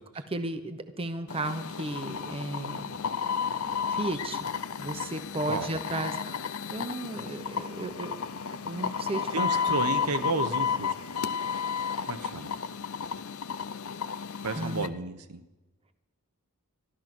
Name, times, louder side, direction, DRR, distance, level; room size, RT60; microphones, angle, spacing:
voice 1, 0.3-3.0 3.9-4.5 4.8-6.4 6.7-8.1 8.6-9.7 14.6-14.9, right 2 dB, 25° right, 9 dB, 0.8 m, -34 dB
sound 1, 1.3-14.9, left 6 dB, 65° left, 0.6 m, -32 dB
voice 2, 9.3-10.9 12.1-12.5 14.4-15.4, right 3 dB, 90° right, 10 dB, 0.9 m, -32 dB
13.0 x 12.0 x 6.1 m, 1.1 s
head